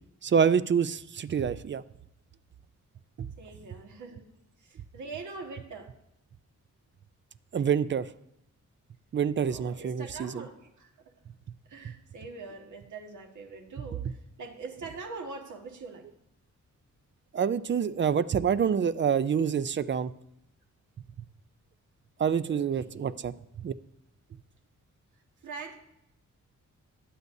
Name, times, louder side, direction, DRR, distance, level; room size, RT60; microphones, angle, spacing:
voice 1, 0.2-1.8 7.5-8.0 9.1-10.4 17.3-20.1 22.2-23.3 23.6-23.7, right 7 dB, 40° right, 15 dB, 0.4 m, -26 dB
voice 2, 3.4-4.2 4.6-5.9 9.4-10.9 11.7-16.1 22.5-23.1 25.4-25.8, right 4 dB, 80° right, 3 dB, 1.8 m, -43 dB
20.0 x 8.2 x 2.7 m, 0.80 s
wide cardioid pair, 115°, 30 cm